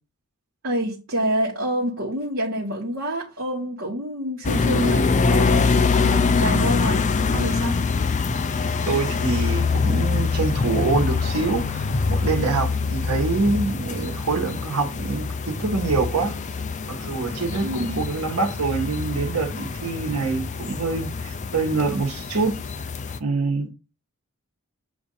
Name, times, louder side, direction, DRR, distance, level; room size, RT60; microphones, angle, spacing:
voice 1, 0.6-7.1 7.3-7.9 17.6-18.1, right 1 dB, 55° right, 1.2 m, -27 dB
sound 1, 4.4-23.2, left 4 dB, 30° left, 0.4 m, -24 dB
voice 2, 8.9-16.3 16.9-22.5 23.2-23.7, right 3 dB, 90° right, 1.3 m, -25 dB
7.0 x 2.6 x 5.4 m
head